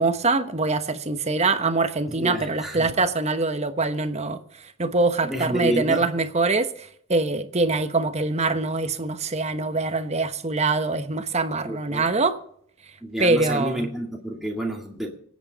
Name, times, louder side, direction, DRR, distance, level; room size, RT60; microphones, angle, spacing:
voice 1, 0.0-4.4 4.8-12.4 13.2-13.9, right 3 dB, 30° right, 1.0 m, -24 dB
voice 2, 2.1-2.9 5.2-6.1 11.7-12.0 13.0-15.2, equal, ahead, 2.2 m, -29 dB
25.5 x 8.5 x 4.1 m
head